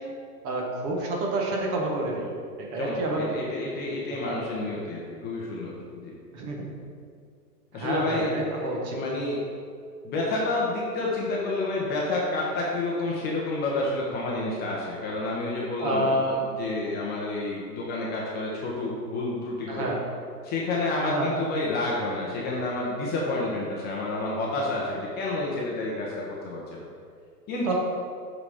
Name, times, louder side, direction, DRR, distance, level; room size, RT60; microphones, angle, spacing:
voice 1, 0.4-2.3 2.6-3.4 4.2-4.4 6.3-6.6 7.7-9.0 15.8-16.3 19.7-20.0 21.0-21.3 27.7-27.8, right 2 dB, 30° right, -1 dB, 1.3 m, -28 dB
voice 2, 2.8-6.1 7.7-8.6 8.9-9.4 10.0-19.9 20.4-26.8 27.5-27.7, left 2 dB, 20° left, -4 dB, 0.9 m, -29 dB
8.3 x 4.1 x 4.9 m, 2.2 s
hypercardioid pair, 125°, 49 cm